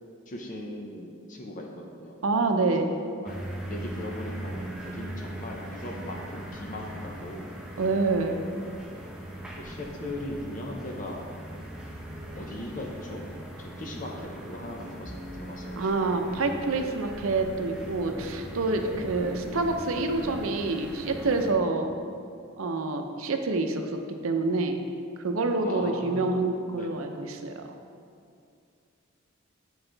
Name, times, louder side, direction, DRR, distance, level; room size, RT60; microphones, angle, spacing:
voice 1, 0.3-2.2 2.7-2.9 3.2-7.5 9.6-11.3 12.3-13.2 13.6-16.2 18.8-19.1 25.6-26.5 26.7-27.1, left 1 dB, 40° left, 0 dB, 0.7 m, -39 dB
voice 2, 2.2-2.9 7.8-8.4 15.8-21.9 22.6-23.9 24.2-24.8 25.2-27.7, right 3 dB, 80° right, 5 dB, 0.6 m, -27 dB
sound 1, 3.3-21.5, right 1 dB, 5° right, 0.7 m, -40 dB
8.0 x 4.8 x 3.9 m, 2.4 s
head